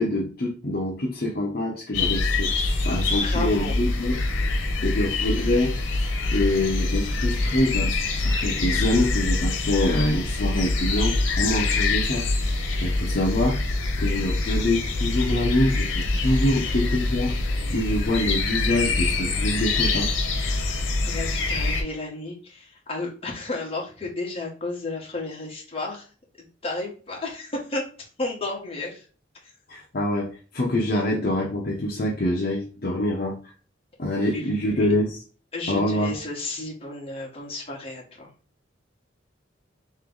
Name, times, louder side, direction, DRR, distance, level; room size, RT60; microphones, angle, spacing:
voice 1, 0.0-2.5 2.8-4.2 4.8-13.6 14.0-17.3 17.7-20.1 29.7-33.4 34.0-35.2 35.7-36.1, left 1 dB, 50° left, -3 dB, 0.7 m, -25 dB
sound 1, 1.9-21.8, left 2 dB, 90° left, 0.8 m, -25 dB
voice 2, 3.2-3.8 16.4-16.8 20.7-26.1 26.6-29.1 29.4-29.5 34.3-34.9 35.5-38.3, left 2 dB, 30° left, -2 dB, 1.3 m, -33 dB
3.2 x 3.0 x 3.8 m, 0.37 s
head